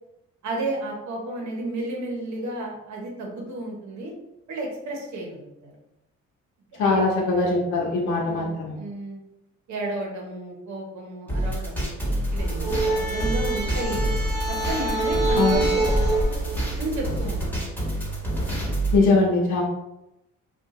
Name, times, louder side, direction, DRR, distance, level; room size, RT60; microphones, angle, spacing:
voice 1, 0.4-4.1 4.5-5.7 6.7-7.0 8.2-9.2 9.7-11.9 12.3-14.1 14.5-17.6, right 2 dB, 70° right, -1 dB, 1.0 m, -33 dB
voice 2, 6.8-8.8 15.4-15.6 18.9-19.6, left 3 dB, 75° left, -2 dB, 0.7 m, -21 dB
sound 1, 11.3-19.0, right 1 dB, 5° left, 1.4 m, -27 dB
sound 2, 12.4-17.4, right 2 dB, 10° right, 1.1 m, -26 dB
2.7 x 2.4 x 3.7 m, 0.90 s
cardioid pair, 90°, 30 cm